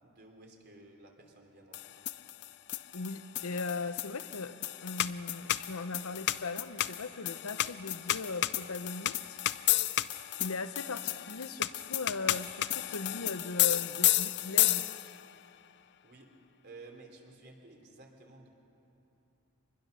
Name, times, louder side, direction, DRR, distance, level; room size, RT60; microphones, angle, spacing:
voice 1, 0.0-2.0 16.0-16.3 16.6-18.5, right 3 dB, 50° right, 2 dB, 3.2 m, -53 dB
sound 1, 1.7-15.3, left 14 dB, 55° left, 0.5 m, -32 dB
voice 2, 2.9-4.6 4.8-9.4 10.4-14.8, left 3 dB, 75° left, 12 dB, 0.9 m, -38 dB
25.0 x 20.0 x 6.6 m, 2.9 s
head